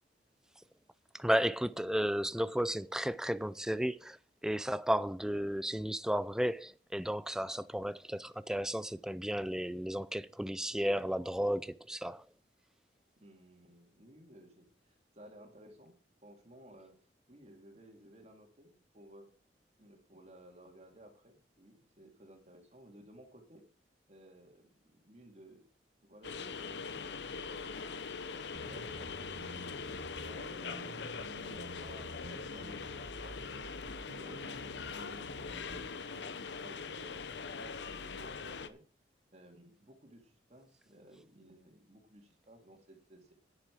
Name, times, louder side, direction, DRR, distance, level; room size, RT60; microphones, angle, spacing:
voice 1, 1.1-4.2 4.4-12.2, equal, 5° right, 0.4 m, -33 dB
voice 2, 13.2-16.0 16.2-17.0 17.3-19.3 19.8-23.6 24.1-25.6 26.0-27.9 28.3-29.4 29.8-33.7 34.1-38.8 39.3-43.3, right 1 dB, 35° right, 2.7 m, -57 dB
sound 1, 26.2-38.7, left 5 dB, 75° left, 0.7 m, -42 dB
sound 2, 28.5-35.9, right 2 dB, 60° right, 0.9 m, -50 dB
10.0 x 9.1 x 4.7 m
head